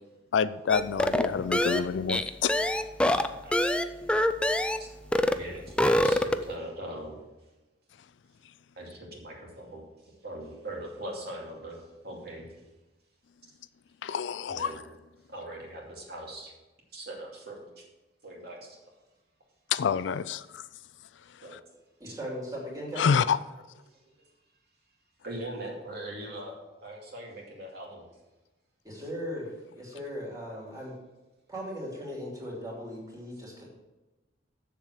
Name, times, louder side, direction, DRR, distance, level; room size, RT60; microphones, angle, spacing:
voice 1, 0.3-2.5 14.0-14.7 19.7-20.4 23.0-23.4, left 6 dB, 75° left, 16 dB, 0.4 m, -27 dB
sound 1, 0.7-4.9 5.1-5.4 5.7-6.5, left 1 dB, 5° left, 0.3 m, -25 dB
voice 2, 5.3-7.2 8.8-9.8 10.2-12.6 14.4-14.8 15.3-16.5 16.9-17.8 18.2-18.8 21.4-21.6 22.1-22.2 23.9-24.2 25.2-26.5 26.8-28.0, right 1 dB, 60° right, -2 dB, 2.5 m, -41 dB
voice 3, 22.0-23.2 28.8-30.9 31.5-33.7, equal, 20° right, -3 dB, 2.9 m, -38 dB
7.2 x 7.1 x 6.5 m, 1.1 s
head